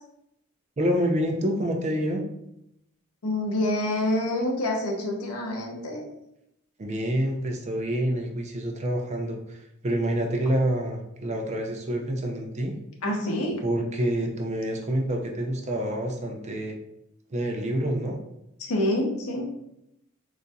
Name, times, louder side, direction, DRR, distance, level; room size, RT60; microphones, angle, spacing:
voice 1, 0.8-2.2 6.8-12.7 13.6-16.8 17.3-18.2, right 1 dB, 30° right, 2 dB, 0.5 m, -27 dB
voice 2, 3.2-6.0 13.0-13.6 18.6-19.5, left 1 dB, 90° left, 1 dB, 0.7 m, -27 dB
3.9 x 2.6 x 2.3 m, 0.81 s
head